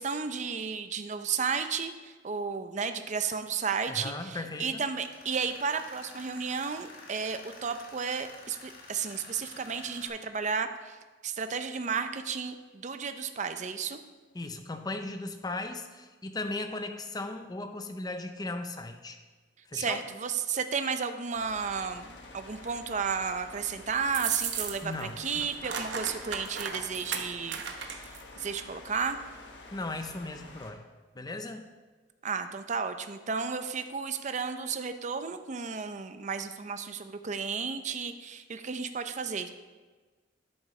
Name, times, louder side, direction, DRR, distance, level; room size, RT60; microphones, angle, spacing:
voice 1, 0.0-11.0 11.2-14.0 19.7-22.1 22.3-28.1 28.4-29.2 32.2-39.5, right 5 dB, 40° right, 9 dB, 0.5 m, -33 dB
voice 2, 3.9-4.8 14.3-19.2 19.7-20.1 24.8-25.7 29.7-30.9 31.1-31.6, left 2 dB, 20° left, 7 dB, 0.6 m, -37 dB
Tools, 5.0-10.1, left 2 dB, 55° left, 1.9 m, -50 dB
sound 1, 21.3-30.7, left 2 dB, 75° left, 1.3 m, -49 dB
sound 2, 24.1-25.0 25.3-28.2, right 7 dB, 75° right, 0.9 m, -34 dB
10.5 x 8.5 x 3.2 m, 1.3 s
head